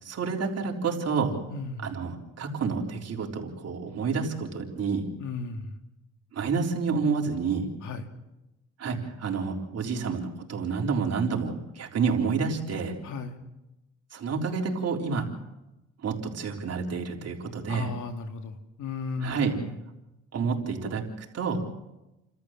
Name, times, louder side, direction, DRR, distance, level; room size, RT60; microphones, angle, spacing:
voice 1, 0.0-1.3 1.8-5.1 6.3-7.7 8.8-12.9 14.1-15.3 16.0-17.9 19.2-19.5 20.3-21.6, right 5 dB, 55° right, 0 dB, 3.8 m, -29 dB
voice 2, 1.5-1.9 5.2-5.8 7.8-8.1 13.0-13.4 17.7-19.8, left 4 dB, 80° left, 6 dB, 2.4 m, -35 dB
29.0 x 13.5 x 7.4 m, 0.98 s
cardioid pair, 90°, 30 cm